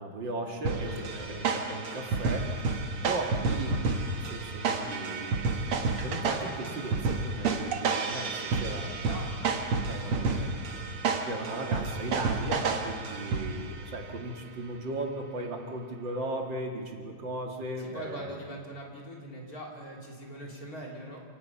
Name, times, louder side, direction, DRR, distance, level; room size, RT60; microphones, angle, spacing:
voice 1, 0.0-2.5 3.0-3.8 4.1-5.4 6.0-9.0 9.9-10.5 11.2-18.3, right 2 dB, 60° right, 1 dB, 2.8 m, -37 dB
sound 1, 0.7-13.8, right 4 dB, 85° right, 2.4 m, -30 dB
voice 2, 17.8-21.2, equal, 45° left, -1 dB, 3.7 m, -42 dB
28.5 x 18.0 x 5.7 m, 2.2 s
omnidirectional pair, 2.3 m